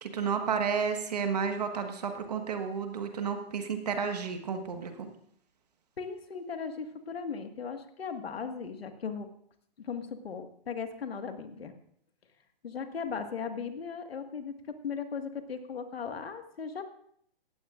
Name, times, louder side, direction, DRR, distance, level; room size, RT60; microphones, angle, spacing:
voice 1, 0.0-5.1, right 6 dB, 40° right, 6 dB, 1.5 m, -32 dB
voice 2, 6.0-9.3 9.8-11.7 12.6-14.5 14.8-16.8, left 6 dB, 75° left, 6 dB, 1.8 m, -37 dB
17.5 x 15.0 x 2.5 m, 0.66 s
hypercardioid pair, 175°, 30 cm